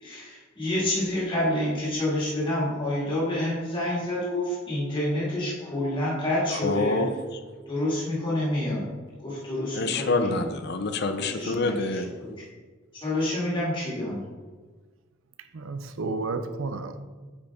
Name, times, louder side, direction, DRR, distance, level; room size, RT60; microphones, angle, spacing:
voice 1, 0.0-7.1 7.7-8.9 9.2-10.4 11.2-11.7 12.2-12.3 12.9-14.2, left 1 dB, 25° left, 2.1 m, -28 dB
voice 2, 6.5-7.4 9.7-12.1, left 3 dB, 55° left, 0.6 m, -27 dB
voice 3, 15.5-17.0, right 3 dB, 70° right, 0.6 m, -31 dB
9.2 x 5.0 x 3.5 m
head